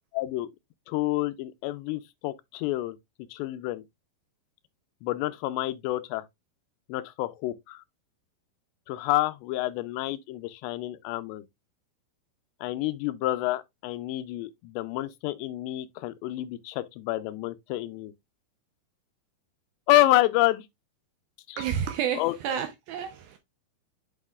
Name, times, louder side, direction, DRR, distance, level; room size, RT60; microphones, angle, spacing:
voice 1, 0.2-0.5 0.9-3.0 3.3-3.8 5.0-6.2 6.9-7.8 8.9-11.4 12.6-18.1 19.9-20.7 21.5-21.6 22.2-22.6, left 15 dB, 85° left, 2.8 m, -28 dB
voice 2, 21.6-23.4, right 9 dB, 80° right, 2.1 m, -30 dB
8.5 x 5.6 x 2.3 m
omnidirectional pair, 5.0 m